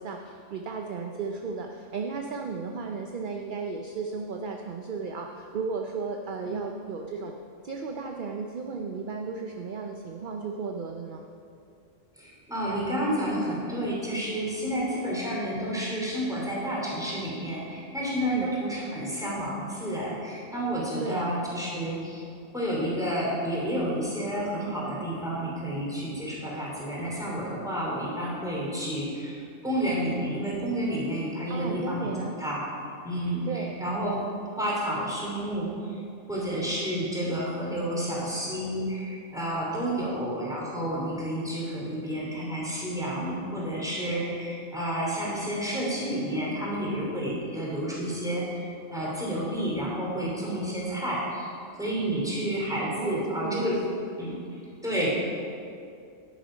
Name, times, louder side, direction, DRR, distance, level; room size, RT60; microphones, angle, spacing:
voice 1, 0.0-7.3 7.6-11.2 18.2-18.5 21.0-21.3 31.5-32.4 33.4-33.8 52.9-53.7, right 4 dB, 50° right, 3 dB, 0.7 m, -34 dB
voice 2, 12.2-22.2 22.5-32.1 32.4-32.7 33.0-34.3 34.6-36.0 36.3-51.5 51.8-53.8 54.2-54.4 54.8-55.1, right 1 dB, 5° right, -5 dB, 3.0 m, -30 dB
10.5 x 9.4 x 5.0 m, 2.4 s
omnidirectional pair, 1.3 m